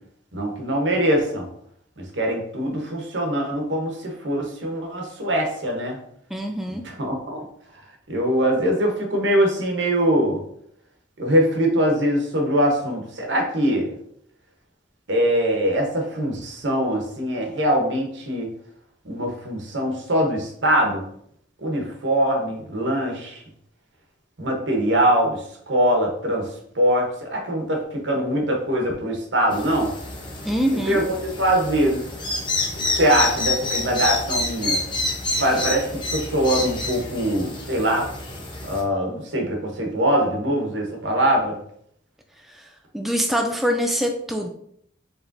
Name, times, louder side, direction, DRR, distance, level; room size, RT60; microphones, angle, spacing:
voice 1, 0.3-1.5 2.0-6.0 6.8-7.4 8.1-10.4 11.2-13.9 15.1-18.5 19.0-21.0 21.6-23.4 24.4-29.9 30.7-32.1 32.8-34.8 35.4-38.1 38.6-41.6, equal, 80° right, 1 dB, 1.1 m, -22 dB
voice 2, 6.3-6.9 30.4-31.0 35.3-35.6 42.5-44.5, equal, ahead, 2 dB, 0.3 m, -25 dB
sound 1, 29.5-38.8, left 2 dB, 25° left, 0.8 m, -28 dB
4.8 x 3.3 x 2.7 m, 0.69 s
head